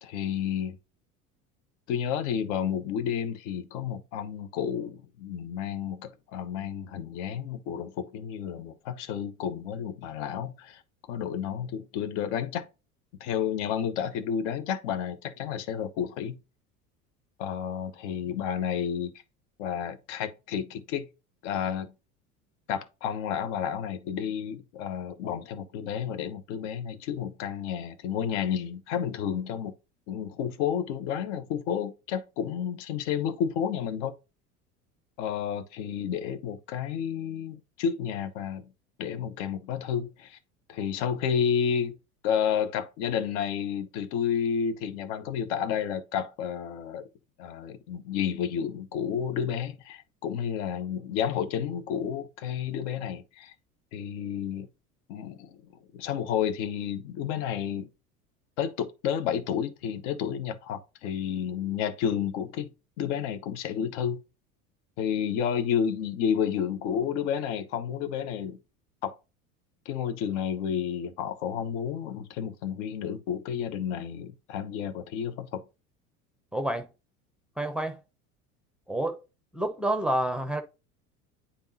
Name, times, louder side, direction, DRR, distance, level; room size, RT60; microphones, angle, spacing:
voice 1, 0.0-0.8 1.9-10.8 11.1-12.7 13.2-16.4 17.4-19.1 19.6-21.1 21.4-21.9 22.7-29.7 30.1-34.1 35.2-38.7 39.0-40.4 40.7-42.0 42.2-47.1 47.4-53.5 53.9-54.7 55.1-55.6 55.9-57.9 58.6-62.7 63.0-64.2 65.0-68.6 69.0-69.2 69.9-75.6, left 8 dB, 55° left, 0.8 m, -31 dB
voice 2, 76.5-76.9 77.6-78.0 78.9-79.2 79.5-80.6, right 1 dB, ahead, 0.8 m, -28 dB
9.8 x 3.5 x 2.7 m
figure-of-eight pair, 70°, 44 cm